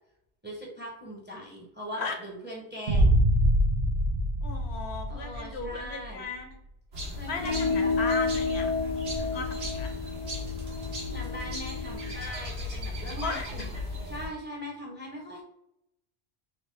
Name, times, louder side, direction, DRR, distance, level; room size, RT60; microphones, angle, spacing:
voice 1, 0.4-3.1 5.1-6.3 7.2-7.9 11.1-15.4, equal, 10° right, -1 dB, 0.7 m, -40 dB
Boom, 2.9-5.8, equal, 50° right, 0.6 m, -24 dB
voice 2, 4.4-6.6 7.3-8.7 9.2-9.9 13.2-13.6, left 4 dB, 70° left, 4 dB, 0.9 m, -36 dB
sound 1, 6.9-14.3, left 2 dB, 90° right, 1.6 m, -36 dB
sound 2, 7.4-12.2, left 4 dB, 55° left, 0.4 m, -31 dB
4.3 x 2.3 x 3.2 m, 0.79 s
omnidirectional pair, 1.1 m